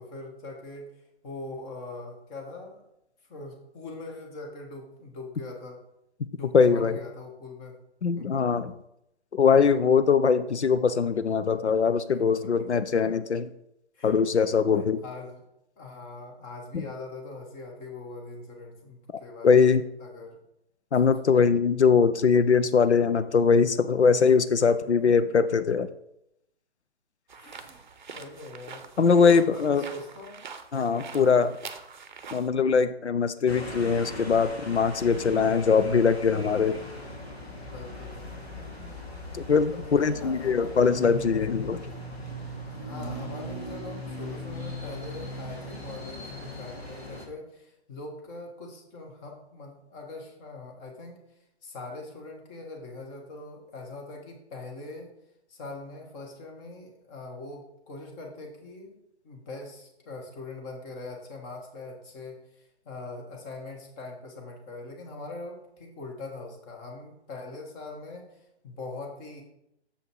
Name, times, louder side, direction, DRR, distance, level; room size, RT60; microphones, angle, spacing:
voice 1, 0.0-2.8 3.3-5.8 6.3-7.8 8.2-8.5 12.1-12.7 13.9-14.2 14.8-15.4 15.8-19.7 20.0-20.4 21.0-21.4 25.0-25.1 27.3-27.8 28.1-28.8 29.5-30.5 31.1-31.3 37.5-38.5 39.8-41.0 41.9-42.0 42.7-51.2 51.6-55.1 55.5-59.0 59.2-69.4, left 2 dB, 20° left, 1 dB, 1.2 m, -42 dB
voice 2, 6.5-7.0 8.0-8.7 9.3-13.5 14.0-15.0 16.7-16.8 19.4-19.8 20.9-25.9 29.0-29.8 30.7-31.5 32.3-36.8 39.3-41.8, left 5 dB, 85° left, 12 dB, 0.5 m, -22 dB
sound 1, 27.3-32.5, right 5 dB, 45° right, 0.7 m, -44 dB
sound 2, 33.5-47.3, left 1 dB, 65° left, 2.3 m, -39 dB
7.0 x 5.5 x 4.5 m, 0.81 s
figure-of-eight pair, 135°, 33 cm